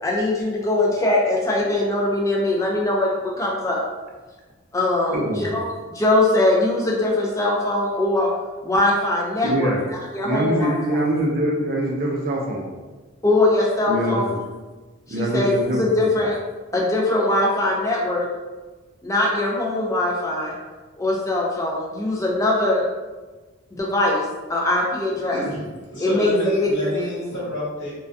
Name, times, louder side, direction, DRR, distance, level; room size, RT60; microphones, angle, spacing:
voice 1, 0.0-3.8 4.7-5.7 5.9-8.3 8.6-9.8 10.1-11.0 13.2-14.3 15.1-16.4 16.7-18.3 19.0-20.5 21.0-22.8 23.7-24.2 24.5-25.4 26.0-26.3 26.6-26.9, left 2 dB, 15° left, -3 dB, 0.4 m, -21 dB
voice 2, 5.1-5.5 9.4-9.8 10.2-12.7 13.9-14.4 15.1-16.1, right 1 dB, 45° right, -1 dB, 0.4 m, -24 dB
voice 3, 25.3-25.6 25.9-27.9, equal, 60° left, -7 dB, 1.0 m, -27 dB
2.3 x 2.2 x 2.5 m, 1.3 s
head